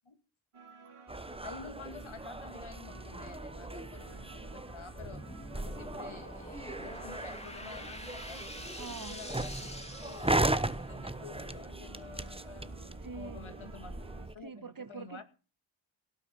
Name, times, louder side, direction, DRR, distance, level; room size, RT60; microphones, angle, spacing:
sound 1, 0.5-14.3, right 5 dB, 90° right, 2.2 m, -54 dB
sound 2, 1.1-14.3, right 2 dB, 10° right, 0.9 m, -37 dB
voice 1, 1.4-5.3 5.5-9.7 10.0-12.8 13.1-14.0 14.3-15.2, left 5 dB, 70° left, 2.3 m, -50 dB
sound 3, 4.7-11.0, left 1 dB, 10° left, 2.8 m, -47 dB
voice 2, 8.8-9.3 13.0-13.7 14.4-15.2, right 4 dB, 40° right, 1.2 m, -45 dB
17.5 x 7.0 x 6.9 m
wide cardioid pair, 55°, 49 cm